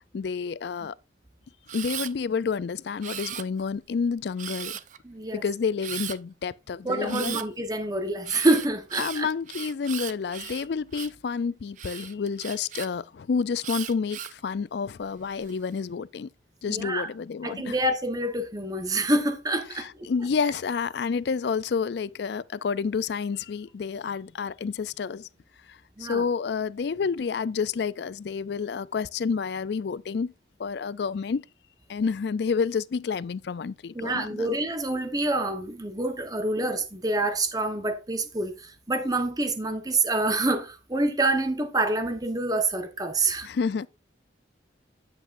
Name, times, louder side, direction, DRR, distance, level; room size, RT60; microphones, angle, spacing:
voice 1, 0.1-0.9 1.7-4.7 5.4-7.4 9.0-16.3 16.6-17.7 19.8-25.3 26.0-30.3 30.6-31.4 31.9-34.5 43.4-43.9, left 5 dB, 60° left, 0.4 m, -29 dB
Camera, 1.7-2.1 3.0-3.8 4.4-5.0 5.8-6.2 7.1-7.5 8.2-11.2 11.8-12.9 13.6-14.4 15.0-15.5, right 11 dB, 40° right, 0.4 m, -37 dB
voice 2, 5.0-5.4 6.8-9.3 16.7-17.1 17.4-20.1 26.0-26.2 33.9-43.5, right 2 dB, 20° right, 1.0 m, -27 dB
9.6 x 7.9 x 2.5 m
head